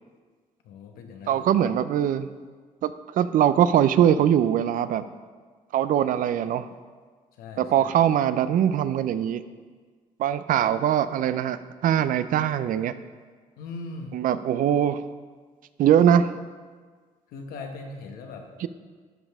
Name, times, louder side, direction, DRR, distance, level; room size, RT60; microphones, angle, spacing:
voice 1, 0.6-1.5 7.4-7.9 13.6-14.2 17.3-18.5, left 3 dB, 90° left, 4 dB, 1.0 m, -39 dB
voice 2, 1.3-2.3 2.8-5.0 5.7-6.7 7.6-9.4 10.2-12.9 14.1-15.0 15.8-16.3 18.6-18.7, right 10 dB, 70° right, 13 dB, 0.4 m, -22 dB
12.0 x 5.4 x 3.5 m, 1.5 s
cardioid pair, 85°, 15 cm